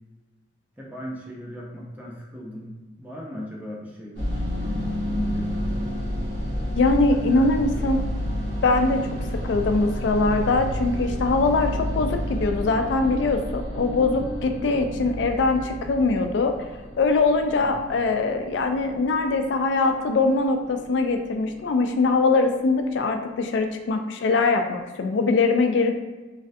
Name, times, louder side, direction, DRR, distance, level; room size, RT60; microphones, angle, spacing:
voice 1, 0.8-5.9 7.1-8.1 17.6-17.9, equal, 10° right, -4 dB, 0.6 m, -38 dB
sound 1, 4.2-22.5, equal, 80° right, 0.8 m, -31 dB
voice 2, 6.7-8.0 8.6-9.0 9.4-16.5 17.0-25.9, left 3 dB, 70° left, 6 dB, 0.3 m, -22 dB
3.1 x 2.5 x 2.5 m, 1.2 s
head